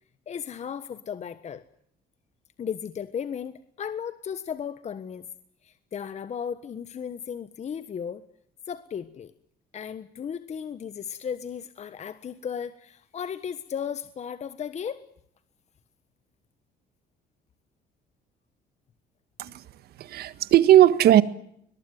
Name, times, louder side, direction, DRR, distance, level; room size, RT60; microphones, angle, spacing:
voice 1, 0.3-1.6 2.6-5.3 5.6-8.2 8.7-9.3 9.7-15.0, left 7 dB, 40° left, 1.4 m, -35 dB
voice 2, 20.0-21.2, right 12 dB, 70° right, 1.7 m, -17 dB
22.5 x 22.0 x 9.4 m
cardioid pair, 110°, 17 cm